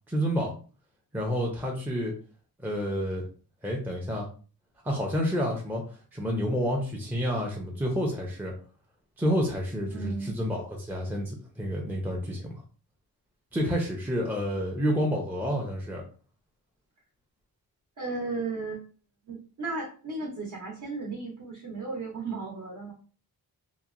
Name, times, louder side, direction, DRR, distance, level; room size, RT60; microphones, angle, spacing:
voice 1, 0.1-0.5 1.1-2.1 2.6-3.2 3.6-4.3 4.8-5.8 6.1-8.5 9.2-12.5 13.5-16.0, equal, 5° right, -1 dB, 0.5 m, -29 dB
voice 2, 9.9-10.3 18.0-18.8 19.3-22.9, right 3 dB, 55° right, -3 dB, 0.8 m, -35 dB
2.8 x 2.1 x 2.4 m, 0.38 s
wide cardioid pair, 130°, 37 cm